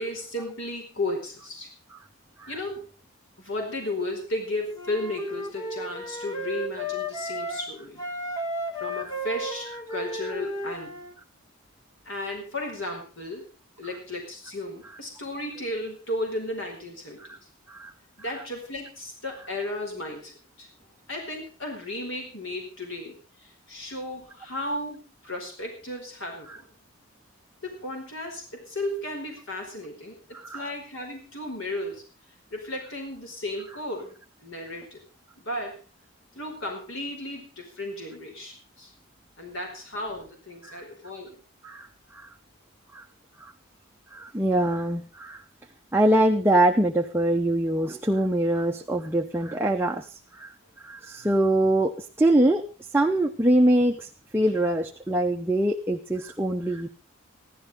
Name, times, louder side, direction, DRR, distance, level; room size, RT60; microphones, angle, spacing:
voice 1, 0.0-1.7 2.5-2.8 3.4-8.0 8.8-10.9 12.0-13.5 13.8-17.4 18.2-20.7 21.1-26.7 27.6-32.0 32.5-35.0 35.4-35.8 36.3-38.9 39.4-41.4, left 1 dB, 70° left, 2 dB, 4.7 m, -34 dB
Wind instrument woodwind instrument, 4.7-7.7 8.0-11.1, equal, 20° left, 1.9 m, -34 dB
voice 2, 30.3-30.7 40.6-40.8 41.6-42.3 42.9-43.0 43.4-43.5 44.1-45.4 45.9-52.6 52.9-56.9, right 1 dB, 10° right, 2 dB, 0.8 m, -24 dB
16.5 x 12.0 x 5.4 m, 0.36 s
head